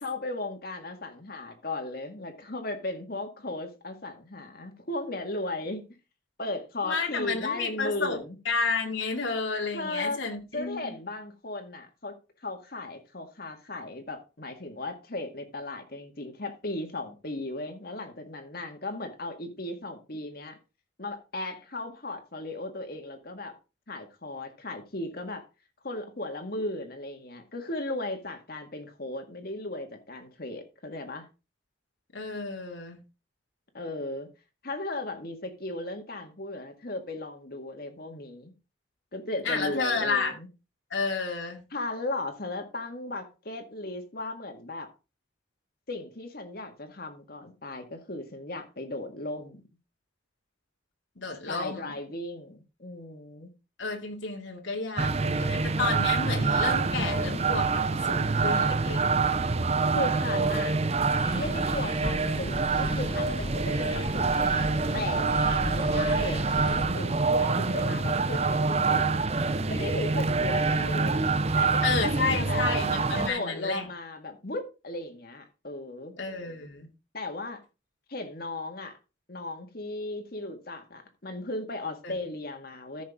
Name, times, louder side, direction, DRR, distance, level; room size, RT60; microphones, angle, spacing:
voice 1, 0.0-5.8 6.4-8.4 9.7-10.2 10.5-12.1 12.4-20.6 21.0-23.6 23.9-25.4 25.8-31.3 33.7-34.3 34.6-38.5 39.1-40.5 41.7-44.9 45.9-49.6 51.5-53.5 59.9-60.8 61.3-69.3 69.7-71.2 71.6-72.7 73.1-76.1 77.1-77.6 78.1-79.0 79.3-83.0, left 2 dB, 55° left, 1.9 m, -36 dB
voice 2, 6.8-8.2 8.4-10.9 32.1-33.0 39.4-40.3 40.9-41.6 51.2-52.0 53.8-59.0 71.8-73.9 76.2-76.9 82.0-82.1, left 4 dB, 90° left, 2.5 m, -31 dB
sound 1, 55.0-73.3, right 4 dB, 35° right, 0.6 m, -26 dB
sound 2, 61.2-66.9, left 1 dB, 25° left, 0.9 m, -37 dB
14.0 x 6.3 x 3.6 m
head